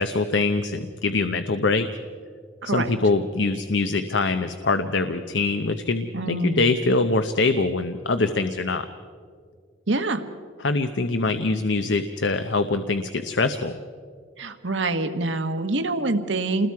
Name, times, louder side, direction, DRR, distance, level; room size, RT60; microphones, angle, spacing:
voice 1, 0.0-1.9 2.7-8.9 10.6-13.8, left 3 dB, 75° left, 9 dB, 0.8 m, -23 dB
voice 2, 2.6-2.9 6.1-6.7 9.9-10.2 14.4-16.7, right 2 dB, 80° right, 7 dB, 1.4 m, -25 dB
28.5 x 21.0 x 4.7 m, 2.1 s
head